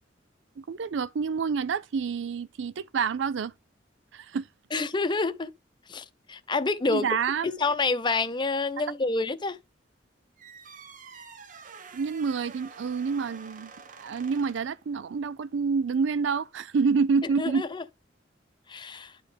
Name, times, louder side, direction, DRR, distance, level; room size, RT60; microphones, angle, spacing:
voice 1, 0.6-3.5 4.1-4.5 6.9-7.6 11.9-13.7 14.0-17.6, right 5 dB, 85° right, 0.4 m, -28 dB
voice 2, 4.7-5.5 5.9-7.1 7.6-9.6 17.4-17.8 18.7-19.1, left 3 dB, 25° left, 0.6 m, -28 dB
sound 1, 10.4-14.8, right 5 dB, 45° right, 0.8 m, -48 dB
11.0 x 4.4 x 3.4 m
head